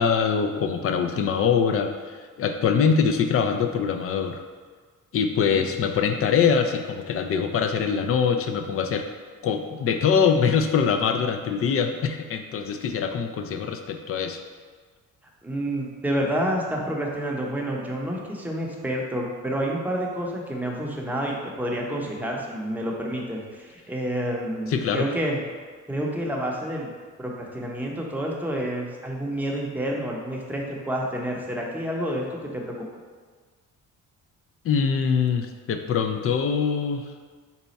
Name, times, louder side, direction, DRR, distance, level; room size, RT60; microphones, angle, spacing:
voice 1, 0.0-4.4 5.1-9.1 9.4-14.4 24.7-25.1 34.6-37.1, left 6 dB, 50° left, 7 dB, 0.4 m, -23 dB
voice 2, 15.4-25.4 25.9-26.9 27.2-32.7, right 1 dB, 5° right, -2 dB, 0.7 m, -29 dB
4.1 x 2.3 x 4.0 m, 1.5 s
cardioid pair, 90°, 30 cm